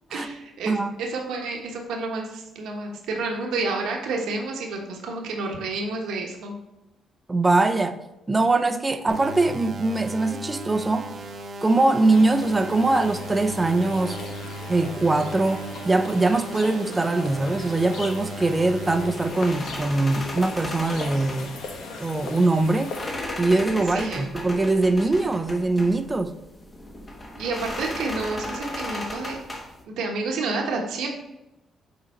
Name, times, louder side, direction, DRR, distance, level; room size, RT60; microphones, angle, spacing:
voice 1, 0.1-6.5 23.9-24.3 27.4-29.4 29.9-31.1, right 3 dB, 85° right, 1.2 m, -30 dB
voice 2, 7.3-8.0 8.3-11.1 11.6-14.2 14.7-21.6 22.0-22.9 23.4-26.3, right 2 dB, 20° right, 0.6 m, -22 dB
sound 1, 9.1-19.1, right 2 dB, 55° right, 0.8 m, -37 dB
sound 2, 12.0-23.1, left 3 dB, 80° left, 1.1 m, -39 dB
sound 3, 19.1-29.8, left 1 dB, 30° left, 1.1 m, -36 dB
6.9 x 4.0 x 4.2 m
cardioid pair, 90°, 0 cm